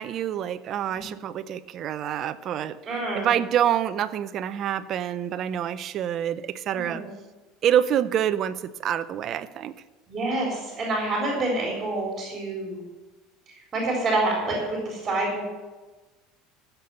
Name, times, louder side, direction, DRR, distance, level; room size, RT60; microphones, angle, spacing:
voice 1, 0.0-2.8 3.1-7.0 7.6-9.7, right 10 dB, 40° right, 11 dB, 0.6 m, -26 dB
voice 2, 2.9-3.3 6.7-7.1 10.1-12.8 13.5-15.4, right 2 dB, 20° right, -2 dB, 3.9 m, -27 dB
15.0 x 6.9 x 6.9 m, 1.2 s
cardioid pair, 140°, 0 cm